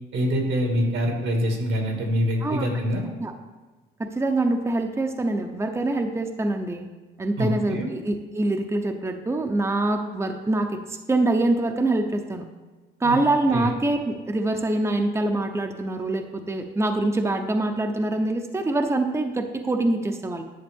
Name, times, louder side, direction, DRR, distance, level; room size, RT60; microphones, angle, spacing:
voice 1, 0.1-3.0 7.4-7.9 13.0-13.2 13.5-13.7, equal, 85° right, 1 dB, 2.0 m, -25 dB
voice 2, 4.0-6.9 7.2-12.4 13.0-20.4, right 2 dB, 15° right, 5 dB, 0.7 m, -25 dB
10.5 x 6.5 x 3.6 m, 1.3 s
cardioid pair, 90°, 20 cm